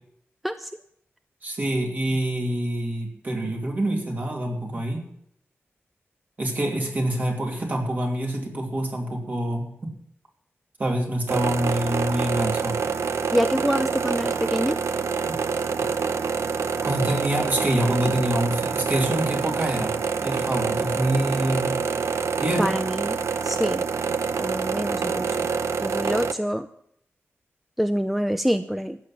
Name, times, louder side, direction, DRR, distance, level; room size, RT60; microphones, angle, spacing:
voice 1, 1.4-5.1 6.4-9.9 10.8-12.8 15.3-15.4 16.8-20.0 20.2-21.8 22.4-22.7, right 1 dB, 40° right, 1 dB, 2.7 m, -26 dB
sound 1, 11.3-26.3, right 5 dB, 85° right, 0.7 m, -26 dB
voice 2, 13.3-14.8 22.6-23.9 24.4-25.5 25.8-26.7 27.8-29.0, equal, 5° right, 9 dB, 0.4 m, -26 dB
13.5 x 9.2 x 5.9 m, 0.71 s
wide cardioid pair, 160°, 5 cm